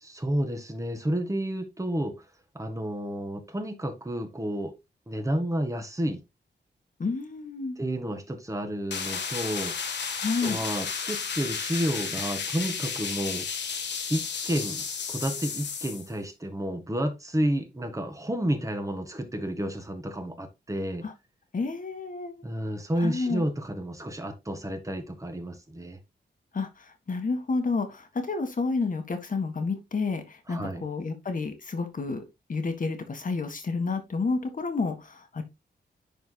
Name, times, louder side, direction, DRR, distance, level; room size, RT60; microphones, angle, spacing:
voice 1, 0.0-2.2 2.5-4.7 5.1-6.2 7.8-9.7 10.4-13.5 14.1-21.0 22.4-26.0 30.5-30.8, right 1 dB, 20° right, 1.6 m, -31 dB
voice 2, 7.0-7.8 10.2-10.6 21.0-21.1 21.5-22.4 23.0-23.4 26.5-32.2 32.5-35.4, left 4 dB, 50° left, 1.7 m, -30 dB
sound 1, 8.9-16.1, left 6 dB, 80° left, 1.3 m, -33 dB
10.5 x 4.6 x 2.2 m
wide cardioid pair, 95°, 18 cm